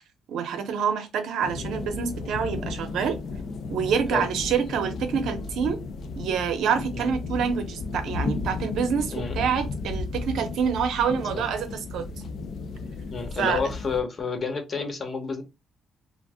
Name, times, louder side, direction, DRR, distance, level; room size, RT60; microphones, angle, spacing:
voice 1, 0.3-3.2 3.7-5.8 6.2-12.0 13.4-13.6, right 7 dB, 80° right, 0.6 m, -27 dB
sound 1, 1.4-14.0, left 4 dB, 65° left, 0.5 m, -34 dB
voice 2, 9.1-9.5 11.3-11.4 13.1-15.4, left 5 dB, 45° left, 0.9 m, -30 dB
2.5 x 2.1 x 3.3 m
cardioid pair, 90°, 0 cm